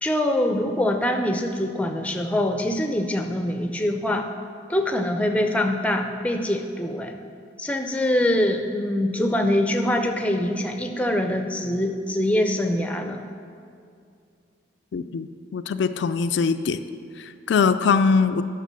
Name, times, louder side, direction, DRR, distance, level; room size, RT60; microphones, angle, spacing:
voice 1, 0.0-4.3 4.7-7.2 7.6-13.2, left 1 dB, 5° left, 5 dB, 0.5 m, -24 dB
voice 2, 14.9-16.8 17.2-18.4, left 5 dB, 65° left, 10 dB, 0.3 m, -22 dB
9.2 x 5.9 x 6.7 m, 2.4 s
head